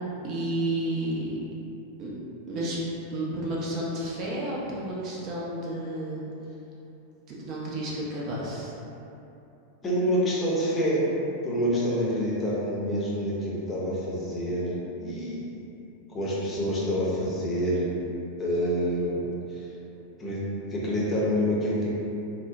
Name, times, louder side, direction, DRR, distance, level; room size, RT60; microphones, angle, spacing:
voice 1, 0.2-1.3 2.0-2.1 2.5-2.8 3.1-6.2 7.3-8.7, right 1 dB, 40° right, -5 dB, 0.5 m, -31 dB
voice 2, 9.8-11.0 11.4-15.5 16.1-17.9 18.4-19.2 19.5-19.7 20.2-20.4 20.7-21.9, equal, 20° left, -6 dB, 0.7 m, -27 dB
3.6 x 2.0 x 2.6 m, 2.9 s
figure-of-eight pair, 90°, 0 cm